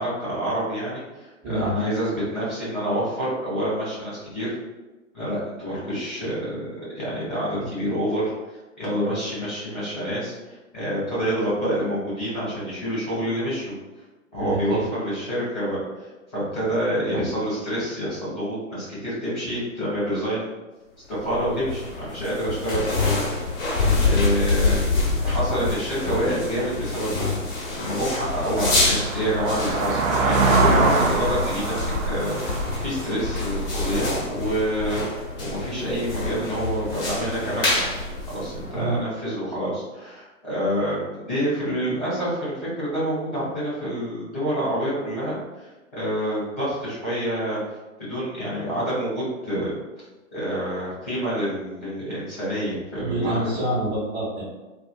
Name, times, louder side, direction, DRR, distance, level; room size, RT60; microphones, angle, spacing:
voice 1, 0.0-4.5 5.1-6.7 6.9-8.3 8.8-13.7 14.3-20.5 21.1-27.3 27.7-31.8 32.1-38.0 38.3-47.6 48.0-49.8 50.3-53.5, equal, 5° left, -20 dB, 0.3 m, -27 dB
voice 2, 1.4-1.8 7.6-7.7 14.3-14.9 38.7-39.1 53.0-54.4, right 1 dB, 25° right, -7 dB, 1.1 m, -27 dB
sound 1, 21.2-39.0, left 3 dB, 40° left, 0.9 m, -26 dB
sound 2, 26.8-26.9 27.4-34.0, right 3 dB, 70° right, 0.6 m, -24 dB
2.4 x 2.4 x 2.2 m, 1.1 s
figure-of-eight pair, 120°, 41 cm